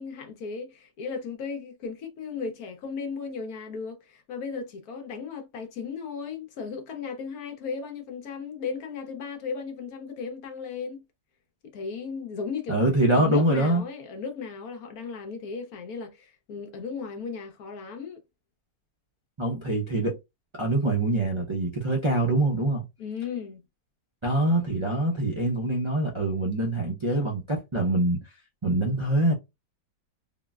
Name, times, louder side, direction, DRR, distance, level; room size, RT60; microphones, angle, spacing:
voice 1, 0.0-11.0 11.7-12.8 13.1-18.2 23.0-23.6, left 5 dB, 65° left, 1.2 m, -36 dB
voice 2, 12.7-13.8 19.4-20.2 20.6-22.8 24.2-28.2 28.6-29.3, right 1 dB, 50° right, 0.3 m, -24 dB
3.8 x 2.1 x 2.3 m
omnidirectional pair, 1.8 m